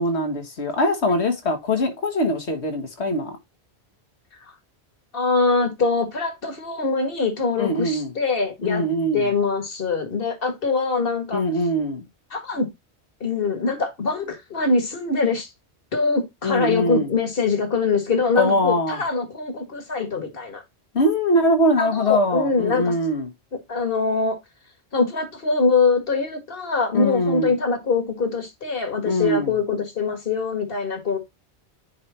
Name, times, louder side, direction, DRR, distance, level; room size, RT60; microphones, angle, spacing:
voice 1, 0.0-3.4 7.6-8.1 8.6-9.3 11.3-12.1 16.4-17.1 18.4-19.0 20.9-23.3 26.9-27.5 29.1-29.5, left 1 dB, 80° left, 1.9 m, -22 dB
voice 2, 5.1-8.8 9.1-11.4 12.3-12.7 13.2-15.5 15.9-20.6 21.8-22.9 23.7-24.4 24.9-31.2, left 4 dB, 60° left, 2.0 m, -23 dB
9.8 x 3.4 x 4.2 m
omnidirectional pair, 1.1 m